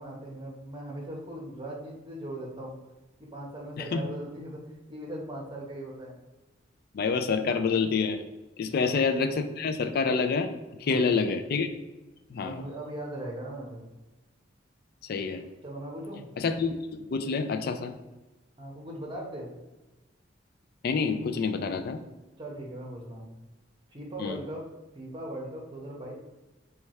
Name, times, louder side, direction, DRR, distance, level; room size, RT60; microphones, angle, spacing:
voice 1, 0.0-2.8 3.2-4.6 4.9-6.1 8.7-9.0 10.8-11.2 12.4-13.9 15.6-16.2 18.6-19.5 22.4-23.3 23.9-26.1, right 1 dB, 25° right, -2 dB, 0.8 m, -39 dB
voice 2, 6.9-8.2 8.6-10.5 10.8-11.7 12.3-12.6 15.1-15.4 16.4-17.9 20.8-22.0 24.2-24.4, left 5 dB, 50° left, 8 dB, 0.3 m, -27 dB
3.3 x 2.3 x 4.1 m, 1.1 s
head